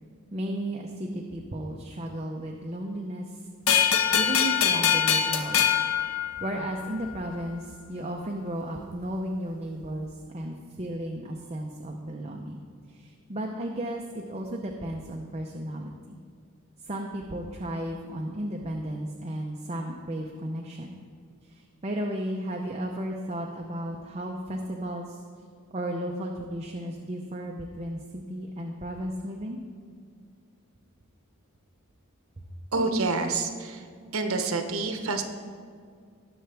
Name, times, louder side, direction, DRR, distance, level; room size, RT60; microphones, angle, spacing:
voice 1, 0.3-3.5 4.1-5.8 6.4-12.6 12.9-16.2 16.8-21.0 21.4-25.2 25.7-29.6, right 1 dB, 30° right, 1 dB, 0.7 m, -34 dB
sound 1, 3.7-6.9, left 8 dB, 85° left, 0.8 m, -24 dB
voice 2, 32.7-33.8 34.1-35.2, right 3 dB, 75° right, 6 dB, 1.0 m, -27 dB
19.0 x 6.8 x 3.4 m, 2.1 s
head